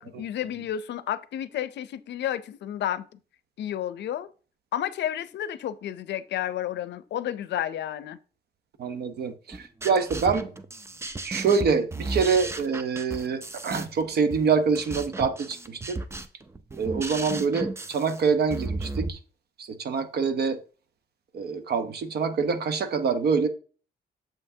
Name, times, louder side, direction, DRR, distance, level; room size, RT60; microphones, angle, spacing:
voice 1, 0.0-3.1 3.6-4.3 4.7-8.2, left 11 dB, 80° left, 0.5 m, -31 dB
voice 2, 8.8-10.5 11.2-16.0 16.8-19.2 19.6-20.6 21.3-23.5, right 5 dB, 65° right, 0.8 m, -25 dB
sound 1, 9.5-19.1, right 2 dB, 15° right, 0.5 m, -35 dB
7.2 x 5.7 x 2.7 m
cardioid pair, 135°, 18 cm